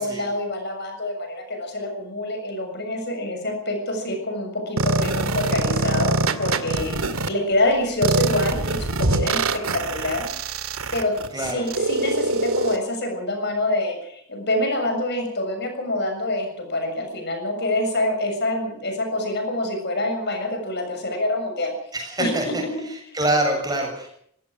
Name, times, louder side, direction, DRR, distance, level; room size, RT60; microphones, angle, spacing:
voice 1, 0.0-10.3 10.9-21.7 22.2-22.5, left 1 dB, 50° left, 5 dB, 6.9 m, -26 dB
sound 1, 4.8-7.3 8.0-12.8, right 2 dB, 80° right, 2.1 m, -23 dB
voice 2, 11.3-11.7 21.9-22.6 22.9-24.2, right 1 dB, 20° right, 2 dB, 7.2 m, -25 dB
25.0 x 16.0 x 6.4 m, 0.66 s
head